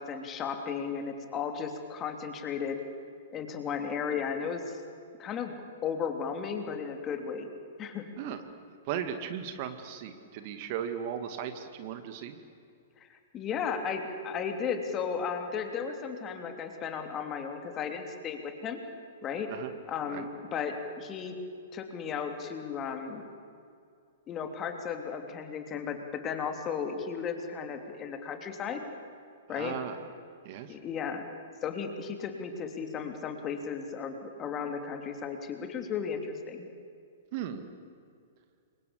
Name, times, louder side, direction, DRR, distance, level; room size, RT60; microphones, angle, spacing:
voice 1, 0.0-2.8 3.3-4.8 5.2-5.5 5.8-7.5 7.8-8.0 13.0-18.8 19.2-19.5 19.9-21.3 21.7-23.3 24.3-28.8 29.5-29.8 30.7-31.2 31.6-36.7, left 6 dB, 25° left, 5 dB, 3.1 m, -35 dB
voice 2, 8.8-12.4 19.5-19.7 20.1-20.2 29.5-30.0 30.4-30.8 37.3-37.7, right 9 dB, 40° right, 8 dB, 2.1 m, -36 dB
29.0 x 23.5 x 8.5 m, 2.4 s
figure-of-eight pair, 110°, 0 cm